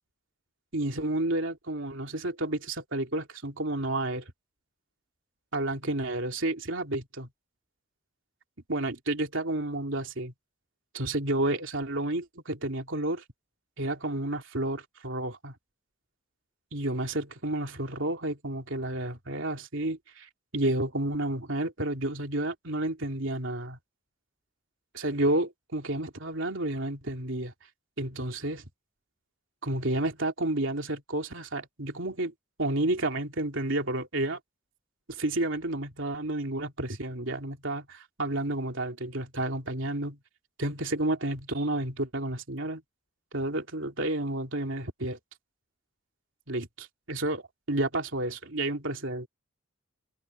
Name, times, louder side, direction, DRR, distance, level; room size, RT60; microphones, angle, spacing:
voice 1, 0.7-4.2 5.5-7.3 8.7-10.3 10.9-13.2 13.8-15.5 16.7-23.8 24.9-27.5 28.0-28.6 29.6-32.3 32.6-34.4 35.1-40.2 40.6-42.8 43.3-45.2 46.5-47.4 47.7-49.3, right 1 dB, 70° right, 3.4 m, -31 dB
head